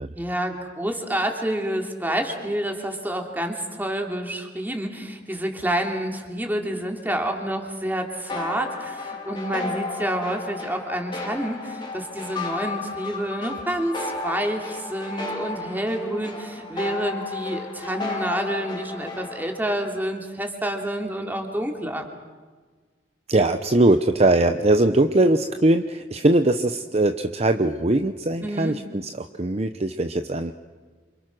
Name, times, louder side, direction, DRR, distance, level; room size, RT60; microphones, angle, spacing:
voice 1, 0.1-22.1 28.4-28.7, right 1 dB, 10° right, 2 dB, 3.1 m, -28 dB
sound 1, 8.3-19.6, left 3 dB, 25° left, 3.6 m, -33 dB
voice 2, 23.3-30.5, right 2 dB, 35° right, 7 dB, 0.8 m, -21 dB
28.5 x 27.0 x 6.2 m, 1.4 s
head